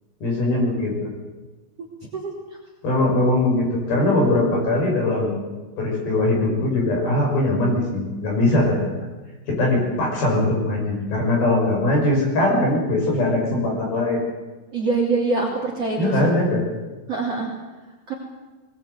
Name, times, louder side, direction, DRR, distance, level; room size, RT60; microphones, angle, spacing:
voice 1, 0.2-1.1 2.8-5.4 5.8-8.9 9.5-14.2 16.0-16.7, left 1 dB, 50° left, -1 dB, 7.6 m, -21 dB
voice 2, 14.7-16.2 17.1-17.5 18.1-18.2, right 3 dB, 35° right, 0 dB, 3.5 m, -24 dB
20.5 x 20.0 x 8.2 m, 1.2 s
omnidirectional pair, 5.6 m